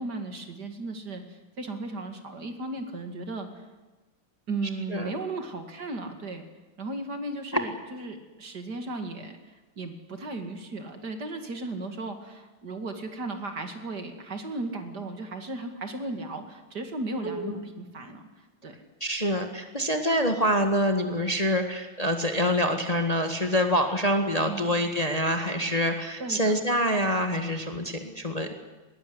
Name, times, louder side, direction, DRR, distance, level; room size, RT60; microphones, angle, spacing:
voice 1, 0.0-3.7 4.5-6.4 6.8-9.4 9.8-18.7 24.5-24.7 26.2-26.6, right 2 dB, 50° right, 6 dB, 2.8 m, -36 dB
voice 2, 17.2-17.6 19.0-28.5, equal, 20° left, 5 dB, 1.7 m, -26 dB
20.5 x 19.0 x 9.7 m, 1.2 s
omnidirectional pair, 2.3 m